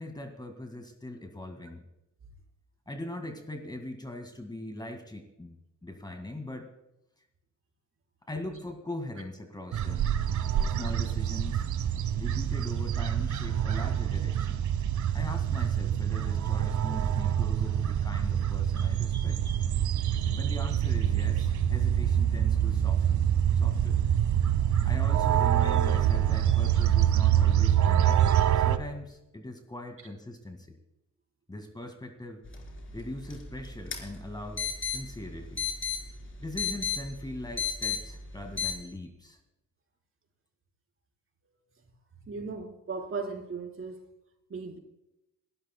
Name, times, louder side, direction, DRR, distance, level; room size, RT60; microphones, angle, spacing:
voice 1, 0.0-1.8 2.9-5.6 5.8-6.7 8.3-10.1 10.7-11.7 12.2-14.6 15.1-19.4 20.3-24.0 24.8-30.8 31.5-32.4 32.9-35.6 36.4-39.4, left 1 dB, 15° left, 6 dB, 1.8 m, -41 dB
sound 1, 9.7-28.8, right 10 dB, 75° right, 1.1 m, -26 dB
sound 2, 32.5-38.8, left 6 dB, 40° left, 4.0 m, -35 dB
voice 2, 42.3-44.0 44.5-44.8, right 4 dB, 45° right, 2 dB, 4.0 m, -36 dB
27.0 x 13.0 x 2.2 m, 0.87 s
cardioid pair, 90°, 30 cm